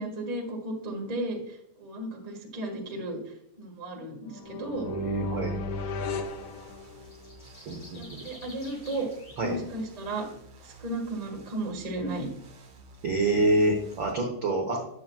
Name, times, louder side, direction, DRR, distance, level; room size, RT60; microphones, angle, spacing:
voice 1, 0.0-3.2 3.6-4.9 7.9-9.1 9.4-10.3 10.6-12.3, right 1 dB, 40° right, 0 dB, 0.5 m, -34 dB
sound 1, 4.3-7.3, left 2 dB, 80° left, 1.2 m, -35 dB
voice 2, 4.9-5.6 7.7-8.2 9.4-9.6 13.0-14.8, right 2 dB, 80° right, 1 dB, 1.0 m, -27 dB
sound 2, 6.2-14.1, right 2 dB, 55° right, 1.2 m, -52 dB
sound 3, 6.4-6.5 6.8-9.5 9.9-10.0, left 1 dB, 35° left, 3.0 m, -50 dB
9.2 x 7.3 x 2.3 m, 0.76 s
omnidirectional pair, 3.7 m